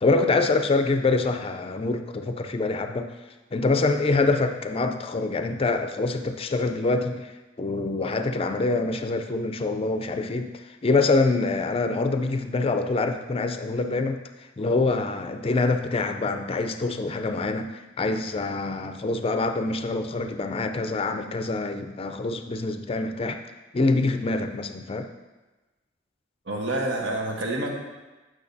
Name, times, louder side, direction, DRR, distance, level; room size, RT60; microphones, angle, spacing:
voice 1, 0.0-3.1 3.5-23.4 23.7-25.1, left 3 dB, 30° left, 7 dB, 0.4 m, -25 dB
voice 2, 26.5-27.8, right 1 dB, 70° right, 0 dB, 1.2 m, -28 dB
8.6 x 6.2 x 2.7 m, 1.1 s
head